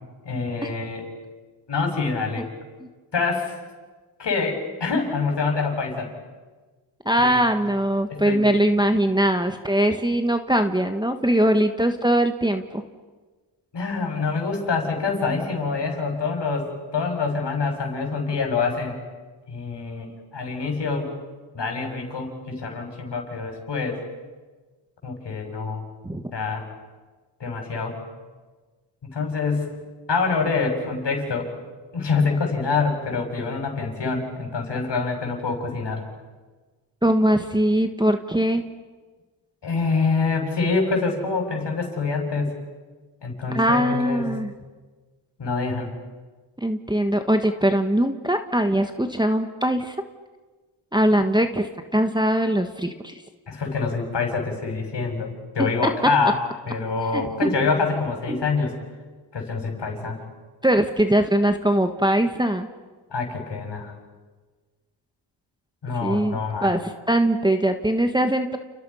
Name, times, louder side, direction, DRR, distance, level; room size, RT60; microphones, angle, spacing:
voice 1, 0.3-1.1 1.7-2.5 3.1-3.5 4.2-6.1 7.2-7.4 8.1-8.4 13.7-19.0 19.5-21.1 21.5-24.0 25.0-25.8 26.3-26.7 27.4-28.0 29.0-29.8 30.1-31.5 31.9-36.0 39.6-42.5 43.2-44.3 45.4-45.9 53.5-56.4 56.7-58.8 59.3-60.2 63.1-63.9 65.8-66.7, left 4 dB, 55° left, 3 dB, 7.0 m, -26 dB
voice 2, 7.0-12.8 26.0-26.2 37.0-38.6 43.5-44.5 46.6-49.9 50.9-53.2 55.6-55.9 57.1-57.5 58.3-58.4 60.6-62.7 66.0-68.6, right 1 dB, 10° right, 5 dB, 1.6 m, -21 dB
30.0 x 30.0 x 5.8 m, 1.3 s
cardioid pair, 75°, 49 cm